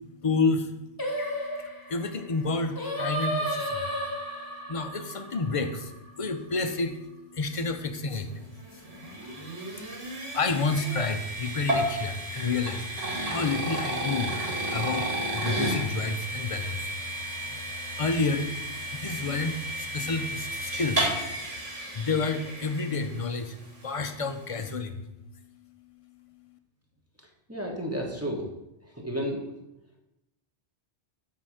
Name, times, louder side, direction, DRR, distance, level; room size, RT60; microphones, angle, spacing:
voice 1, 0.2-0.7 1.9-3.8 4.7-5.9 6.2-7.0 7.3-8.3 10.3-14.3 14.7-15.1 15.3-16.8 18.0-18.5 19.0-21.1 21.9-23.5 23.8-25.0, left 3 dB, 45° left, 7 dB, 0.5 m, -29 dB
Singing, 1.0-6.3, equal, 20° left, 0.8 m, -33 dB
sound 1, 8.2-23.4, right 1 dB, 90° right, 2.4 m, -33 dB
voice 2, 27.5-28.4 29.0-29.4, equal, 15° right, -2 dB, 1.1 m, -31 dB
7.7 x 3.9 x 6.3 m, 0.91 s
omnidirectional pair, 1.2 m